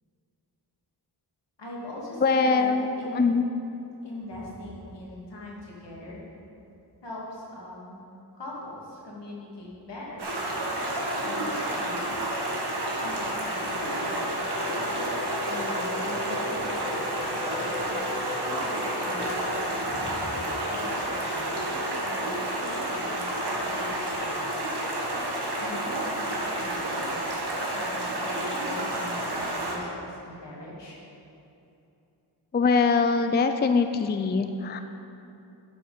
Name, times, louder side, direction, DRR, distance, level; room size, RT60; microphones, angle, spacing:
voice 1, 1.6-2.7 2.9-3.3 4.0-6.2 7.0-8.0 8.3-10.3 11.2-12.2 13.0-15.0 15.4-17.8 18.0-24.3 25.6-31.0, left 1 dB, 75° left, -5 dB, 2.6 m, -41 dB
voice 2, 2.2-2.9 3.2-3.4 32.5-34.8, left 4 dB, 25° left, 8 dB, 0.3 m, -22 dB
Stream, 10.2-29.8, right 1 dB, 65° right, 1.7 m, -30 dB
sound 1, 11.6-26.0, left 1 dB, 50° left, 1.8 m, -38 dB
12.0 x 6.3 x 5.1 m, 2.8 s
wide cardioid pair, 130°, 43 cm